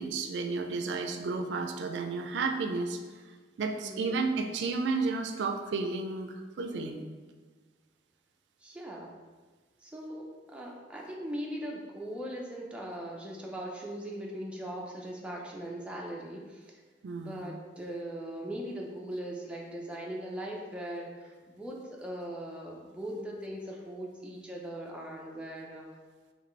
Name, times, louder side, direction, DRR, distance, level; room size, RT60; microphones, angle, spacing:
voice 1, 0.0-3.0 3.6-7.0 17.0-17.4, right 4 dB, 85° right, 5 dB, 0.4 m, -32 dB
voice 2, 3.8-4.3 8.6-9.2 9.8-16.8 17.2-25.9, right 1 dB, 5° right, -2 dB, 0.5 m, -40 dB
4.2 x 3.0 x 3.1 m, 1.4 s
head